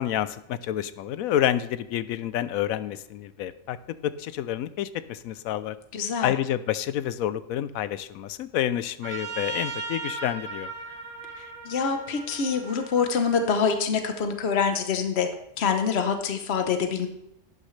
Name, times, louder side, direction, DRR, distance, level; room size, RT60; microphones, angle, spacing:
voice 1, 0.0-3.8 4.0-5.8 6.2-10.7, left 11 dB, 90° left, 14 dB, 1.0 m, -28 dB
voice 2, 5.9-6.3 11.4-15.3 15.6-17.1, left 6 dB, 55° left, 6 dB, 1.2 m, -25 dB
Trumpet, 9.0-13.6, right 3 dB, 80° right, 2.2 m, -37 dB
11.5 x 9.6 x 3.2 m, 0.78 s
omnidirectional pair, 1.4 m